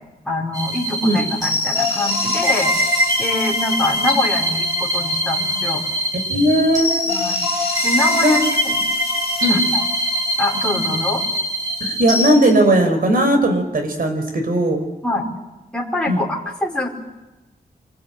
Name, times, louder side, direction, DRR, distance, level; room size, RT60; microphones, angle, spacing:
voice 1, 0.2-2.7 3.2-5.8 7.0-7.4 7.8-8.4 8.6-8.7 9.5-9.8 10.4-11.2 15.0-15.2 15.7-16.9, left 2 dB, 5° left, -3 dB, 4.8 m, -24 dB
sound 1, 0.5-12.3, left 1 dB, 25° right, 7.4 m, -22 dB
voice 2, 6.3-7.1 8.2-8.3 9.4-9.6 11.8-14.8 16.1-16.2, right 1 dB, 65° right, 6 dB, 5.0 m, -17 dB
27.5 x 20.5 x 9.0 m, 1.1 s
wide cardioid pair, 155°, 16 cm